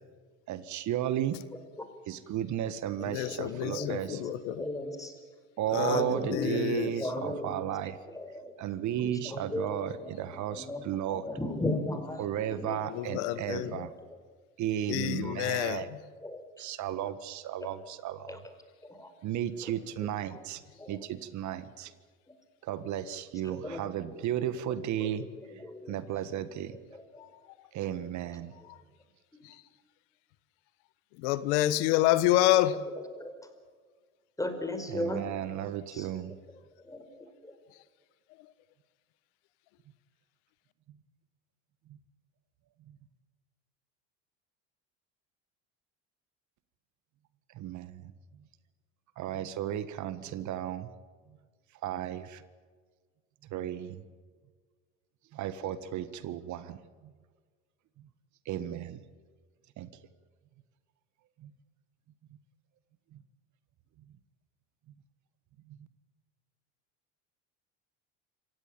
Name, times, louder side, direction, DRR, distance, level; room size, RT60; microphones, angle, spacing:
voice 1, 0.5-1.4 2.1-4.2 5.6-8.0 8.6-11.2 12.2-13.9 14.6-15.9 16.6-18.4 19.2-20.6 20.9-21.9 22.6-25.3 25.9-26.8 27.7-28.5 34.9-36.3 40.9-41.0 41.9-42.0 42.9-43.0 47.5-48.4 49.2-50.9 51.8-52.4 53.5-54.0 55.3-56.8 58.0-58.1 58.4-59.0 59.8-59.9 61.4-61.5 63.1-63.2 65.7-65.9, right 11 dB, 55° right, 14 dB, 1.5 m, -34 dB
voice 2, 3.0-4.6 5.7-6.9 12.9-13.8 14.9-15.9 29.4-29.5 31.2-32.8, left 14 dB, 80° left, 15 dB, 1.2 m, -28 dB
voice 3, 3.6-5.2 5.9-8.5 9.0-12.2 12.5-12.9 13.3-14.2 15.2-15.4 16.2-16.6 18.3-18.4 18.8-19.1 19.6-19.7 20.0-20.1 20.8-21.0 23.4-23.8 24.7-26.0 26.9-27.2 29.3-29.5 32.9-33.3 34.4-35.2 35.9-36.1 36.8-37.5, left 1 dB, 10° left, 7 dB, 4.8 m, -38 dB
27.0 x 16.0 x 8.9 m, 1.6 s
supercardioid pair, 95°, 34 cm